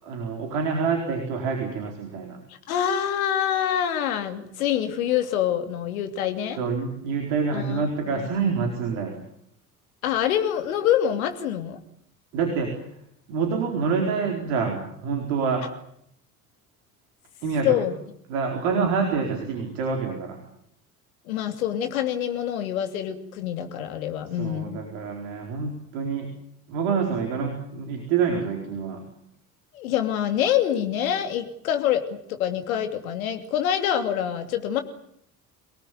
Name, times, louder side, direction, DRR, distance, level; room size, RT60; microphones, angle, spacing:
voice 1, 0.0-2.4 6.6-9.2 12.3-12.8 13.3-15.7 17.4-17.8 18.3-20.4 24.4-26.3 26.7-29.0, right 5 dB, 65° right, 3 dB, 4.5 m, -27 dB
voice 2, 2.7-6.6 7.5-8.3 10.0-11.8 17.6-18.0 19.0-19.1 21.3-24.8 29.7-34.8, left 10 dB, 70° left, 7 dB, 2.9 m, -26 dB
27.5 x 19.0 x 9.5 m, 0.71 s
figure-of-eight pair, 60°, 43 cm